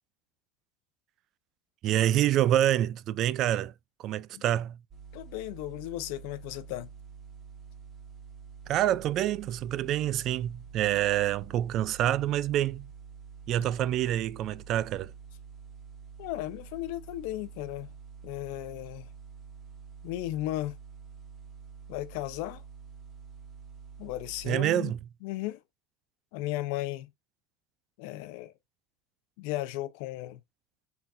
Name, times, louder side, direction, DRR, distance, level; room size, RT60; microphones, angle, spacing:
voice 1, 1.8-3.7 4.0-4.8 8.7-12.9 13.5-15.1 24.5-25.0, right 12 dB, 50° right, 0.3 m, -27 dB
sound 1, 4.9-24.5, right 6 dB, 30° right, 1.2 m, -48 dB
voice 2, 5.1-6.9 16.2-17.9 18.2-19.1 20.0-20.8 21.9-22.6 24.0-24.9 25.2-25.6 26.3-27.1 28.0-28.5 29.4-30.4, left 16 dB, 75° left, 0.6 m, -35 dB
4.1 x 4.0 x 2.5 m
cardioid pair, 140°, 0 cm